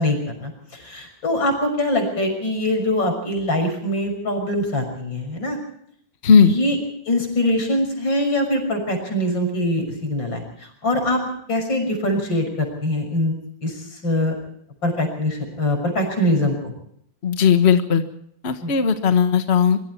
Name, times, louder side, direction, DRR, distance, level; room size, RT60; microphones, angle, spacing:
voice 1, 0.0-5.6 6.4-6.8 7.0-11.2 11.5-13.3 13.6-14.4 14.8-16.7 18.6-18.7, left 1 dB, 80° left, 4 dB, 6.9 m, -23 dB
voice 2, 6.2-6.5 17.2-18.0 18.4-19.8, left 6 dB, 40° left, 8 dB, 1.5 m, -16 dB
24.5 x 23.5 x 4.5 m, 0.69 s
omnidirectional pair, 2.0 m